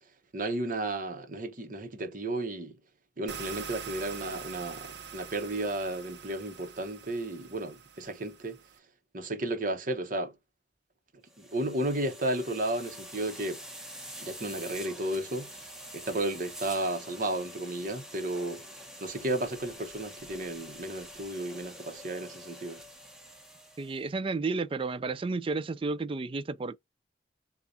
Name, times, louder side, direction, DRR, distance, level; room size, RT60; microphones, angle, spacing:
voice 1, 0.3-2.8 3.2-8.6 9.1-10.3 11.4-13.6 14.2-15.6 15.9-18.6 19.0-22.8, right 1 dB, 50° right, 1.1 m, -33 dB
sound 1, 3.3-8.8, right 7 dB, 75° right, 0.8 m, -44 dB
sound 2, 11.3-24.0, equal, 5° right, 1.1 m, -46 dB
voice 2, 23.8-26.8, right 3 dB, 30° right, 0.4 m, -32 dB
7.0 x 2.4 x 2.7 m
head